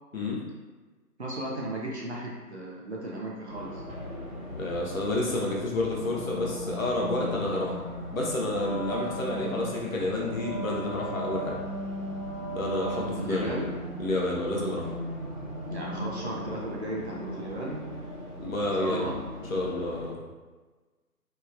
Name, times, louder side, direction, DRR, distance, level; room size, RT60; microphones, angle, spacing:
voice 1, 1.2-3.8 13.2-13.8 15.7-17.8 18.8-19.2, right 1 dB, 50° right, -4 dB, 0.5 m, -35 dB
Race car auto racing, 3.5-20.1, left 1 dB, 70° right, 1.1 m, -39 dB
voice 2, 4.5-7.7 8.1-11.6 12.5-13.6 14.0-14.9 18.4-19.1 19.5-20.2, left 2 dB, 60° left, -3 dB, 0.7 m, -30 dB
Wind instrument woodwind instrument, 8.4-13.6, right 2 dB, 25° left, 0.6 m, -36 dB
3.0 x 2.1 x 2.3 m, 1.3 s
figure-of-eight pair, 150°, 46 cm